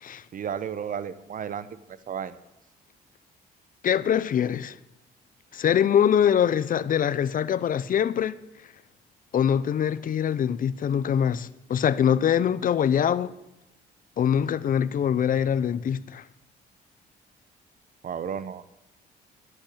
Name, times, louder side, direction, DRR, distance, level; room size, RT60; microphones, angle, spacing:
voice 1, 0.3-1.7 2.1-2.4 18.0-18.7, right 8 dB, 50° right, 0.9 m, -33 dB
voice 2, 3.8-4.8 5.5-8.4 9.3-13.3 14.2-16.2, left 9 dB, 50° left, 0.7 m, -23 dB
11.5 x 8.2 x 8.6 m
cardioid pair, 90°, 18 cm